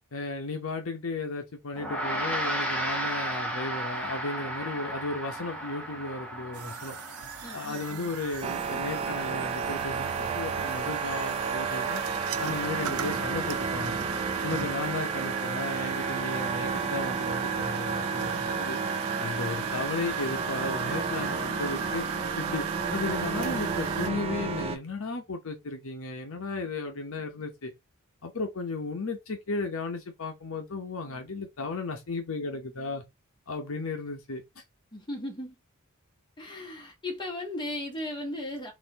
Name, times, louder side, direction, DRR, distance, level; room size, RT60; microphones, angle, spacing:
voice 1, 0.1-7.0 7.5-10.0 10.3-12.0 12.4-14.0 14.4-18.8 19.2-22.0 22.4-22.6 22.9-27.7 28.2-33.0 33.5-34.6, left 3 dB, 70° left, 0.9 m, -35 dB
Gong, 1.8-11.4, right 1 dB, 5° left, 1.0 m, -35 dB
sound 1, 6.5-24.1, right 8 dB, 90° right, 0.5 m, -37 dB
voice 2, 7.4-8.1 34.9-35.5 36.4-38.7, left 1 dB, 20° left, 1.6 m, -36 dB
sound 2, 8.4-24.8, right 4 dB, 30° right, 0.5 m, -32 dB
4.0 x 2.7 x 3.9 m
head